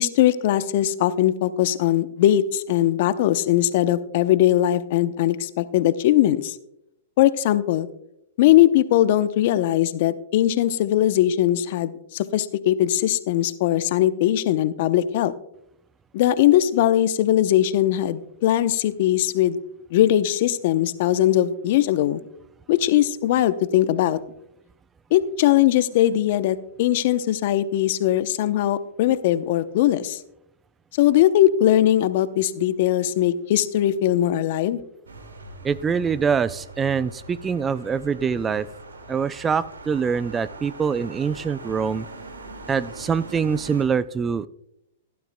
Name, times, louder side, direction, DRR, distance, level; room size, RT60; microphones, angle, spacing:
voice 1, 0.0-6.5 7.2-7.9 8.4-15.3 16.1-19.6 19.9-22.2 22.7-24.2 25.1-30.2 31.0-34.8, left 12 dB, 55° left, 13 dB, 0.7 m, -20 dB
sound 1, 35.1-43.9, right 2 dB, 90° right, 2.1 m, -41 dB
voice 2, 35.6-38.7 39.1-42.1 42.7-44.5, right 6 dB, 20° right, 17 dB, 0.4 m, -24 dB
15.5 x 12.0 x 2.2 m, 0.78 s
hypercardioid pair, 115°, 0 cm